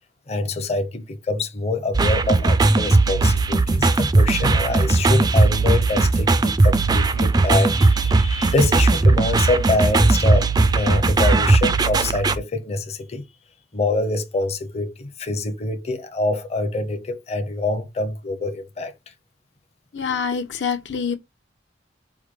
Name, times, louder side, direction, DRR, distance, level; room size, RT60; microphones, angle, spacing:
voice 1, 0.3-13.2 13.7-18.9, left 2 dB, 35° left, 0.6 m, -25 dB
sound 1, 1.9-12.4, right 3 dB, 20° right, 0.3 m, -18 dB
voice 2, 19.9-21.1, left 6 dB, 80° left, 0.8 m, -25 dB
4.9 x 2.2 x 4.6 m
head